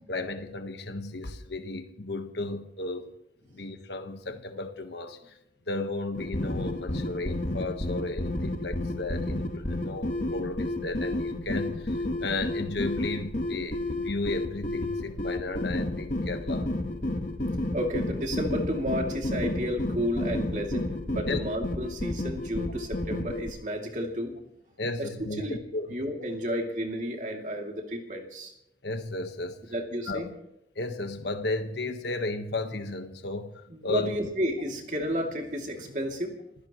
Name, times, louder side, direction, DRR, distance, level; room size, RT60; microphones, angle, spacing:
voice 1, 0.1-3.1 3.5-5.2 5.7-16.7 21.3-21.4 24.8-25.9 28.8-29.6 30.1-30.3 30.8-34.1, left 2 dB, 75° left, 6 dB, 1.3 m, -34 dB
sound 1, 6.1-23.5, left 1 dB, 45° left, 1.3 m, -31 dB
voice 2, 17.7-24.3 25.0-25.1 25.4-25.6 25.9-28.5 29.7-30.3 33.7-36.3, equal, 45° right, 1 dB, 2.7 m, -32 dB
28.0 x 16.5 x 3.1 m, 0.80 s
head